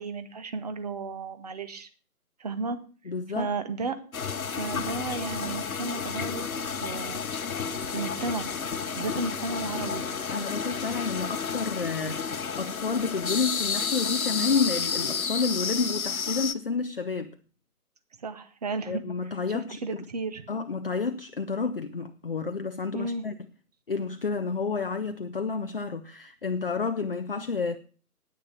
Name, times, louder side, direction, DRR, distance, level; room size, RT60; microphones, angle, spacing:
voice 1, 0.0-1.9 2.4-2.8 3.3-4.0 4.4-6.4 6.8-7.2 7.9-8.5 8.9-10.0 18.2-19.0 19.5-20.4 22.9-23.2, right 3 dB, 25° right, 1.0 m, -33 dB
voice 2, 3.1-3.5 10.3-17.3 18.9-20.0 20.5-23.3 23.9-27.8, left 4 dB, 40° left, 0.6 m, -30 dB
sound 1, 4.1-16.5, left 6 dB, 65° left, 1.1 m, -31 dB
9.5 x 9.3 x 7.3 m
figure-of-eight pair, 145°, 46 cm